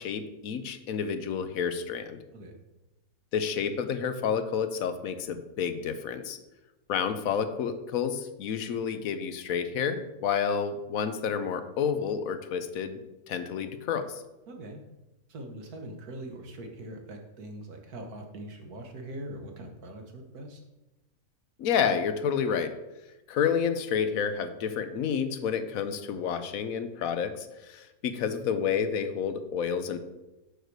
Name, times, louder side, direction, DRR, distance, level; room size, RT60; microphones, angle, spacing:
voice 1, 0.0-2.2 3.3-6.4 6.9-13.0 13.3-14.2 21.6-22.8 23.3-30.0, left 7 dB, 70° left, 10 dB, 1.1 m, -30 dB
voice 2, 14.5-14.8 15.3-20.6, right 1 dB, 90° right, 3 dB, 1.7 m, -42 dB
6.6 x 4.6 x 6.5 m, 0.98 s
omnidirectional pair, 1.5 m